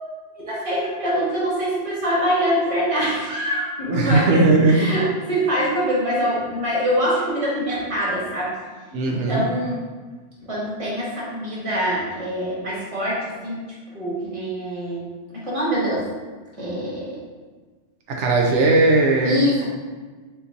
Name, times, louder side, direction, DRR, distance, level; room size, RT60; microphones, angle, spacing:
voice 1, 0.4-8.5 8.9-9.8 10.4-13.6 13.9-16.0 16.6-17.2 19.2-19.6, equal, 30° right, -6 dB, 1.3 m, -24 dB
voice 2, 3.9-4.9 8.9-9.4 18.1-19.4, right 2 dB, 90° right, 0 dB, 1.0 m, -18 dB
4.4 x 3.9 x 2.7 m, 1.4 s
omnidirectional pair, 1.2 m